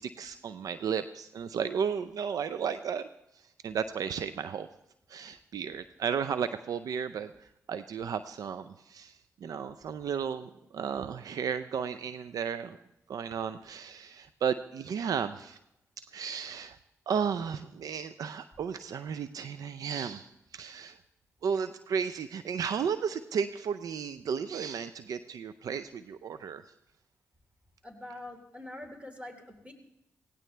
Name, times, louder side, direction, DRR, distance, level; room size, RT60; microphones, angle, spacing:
voice 1, 0.0-3.1 3.6-4.7 5.1-9.1 9.4-12.8 13.1-15.6 16.0-16.8 17.1-21.0 21.4-26.6, right 7 dB, 70° right, 12 dB, 0.5 m, -34 dB
voice 2, 27.8-29.7, left 1 dB, 20° right, 3 dB, 3.9 m, -45 dB
17.0 x 17.0 x 3.3 m, 0.82 s
supercardioid pair, 40°, 6 cm